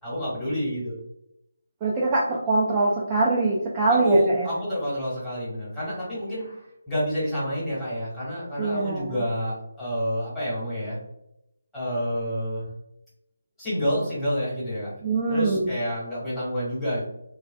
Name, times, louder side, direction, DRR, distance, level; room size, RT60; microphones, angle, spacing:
voice 1, 0.0-1.0 3.9-11.0 11.7-12.7 13.6-14.9 15.3-17.0, equal, 10° left, -10 dB, 1.3 m, -28 dB
voice 2, 1.8-4.5 8.6-9.2 15.0-15.7, right 3 dB, 20° right, -5 dB, 0.4 m, -23 dB
3.2 x 2.4 x 2.3 m, 0.83 s
figure-of-eight pair, 160°, 0 cm